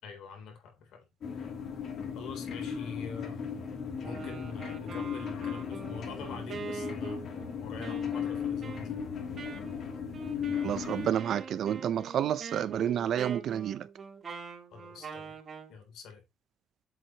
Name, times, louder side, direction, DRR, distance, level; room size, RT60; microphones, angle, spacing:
voice 1, 0.0-1.0 1.3-1.5 2.1-3.4 4.0-9.2 14.7-15.4 15.7-16.2, left 5 dB, 85° left, 3.6 m, -45 dB
sound 1, 1.2-11.1, left 7 dB, 65° left, 3.0 m, -36 dB
Wind instrument woodwind instrument, 4.0-15.7, right 5 dB, 45° right, 3.3 m, -44 dB
voice 2, 10.6-13.9, right 10 dB, 70° right, 0.8 m, -30 dB
7.8 x 7.5 x 3.1 m
cardioid pair, 90°, 0 cm